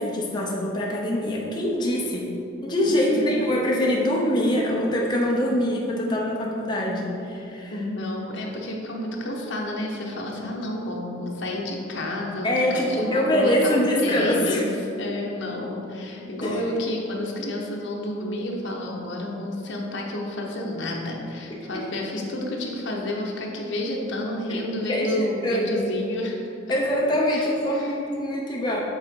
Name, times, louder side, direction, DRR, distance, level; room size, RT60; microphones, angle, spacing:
voice 1, 0.0-2.3 2.6-7.8 12.4-14.6 16.4-16.6 21.7-21.8 24.5-24.6 24.9-25.8 26.7-28.8, equal, 20° left, -3 dB, 0.7 m, -24 dB
voice 2, 7.7-14.7 15.0-26.5 27.3-27.5 27.7-27.9, left 1 dB, 65° left, -1 dB, 1.0 m, -30 dB
7.6 x 3.8 x 4.6 m, 2.7 s
head